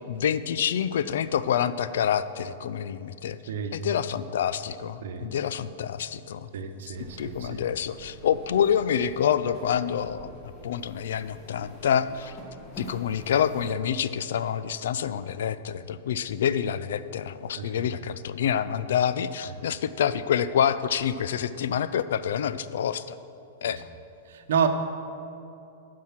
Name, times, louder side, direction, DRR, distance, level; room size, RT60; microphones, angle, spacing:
voice 1, 0.1-3.4 3.7-6.5 7.2-10.3 10.6-12.4 12.8-23.2 23.6-23.8, left 8 dB, 75° left, 14 dB, 0.4 m, -27 dB
voice 2, 3.5-3.8 5.0-5.3 6.5-7.6 17.6-17.9 23.6-23.8 24.3-24.7, right 7 dB, 75° right, 7 dB, 0.9 m, -30 dB
sound 1, 6.9-13.7, equal, 20° left, 1.7 m, -46 dB
11.5 x 4.7 x 7.3 m, 2.8 s
supercardioid pair, 155°, 0 cm